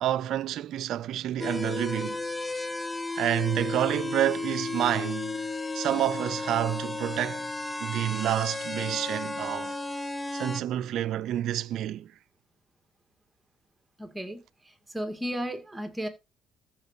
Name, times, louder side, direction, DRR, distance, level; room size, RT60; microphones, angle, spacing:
voice 1, 0.0-2.2 3.2-5.5 5.7-7.5 7.8-9.8 10.3-12.1, right 12 dB, 65° right, 0.5 m, -29 dB
sound 1, 1.4-10.6, left 3 dB, 10° left, 0.7 m, -33 dB
voice 2, 14.0-16.1, equal, 10° right, 2.7 m, -35 dB
14.5 x 5.9 x 3.0 m
supercardioid pair, 65°, 0 cm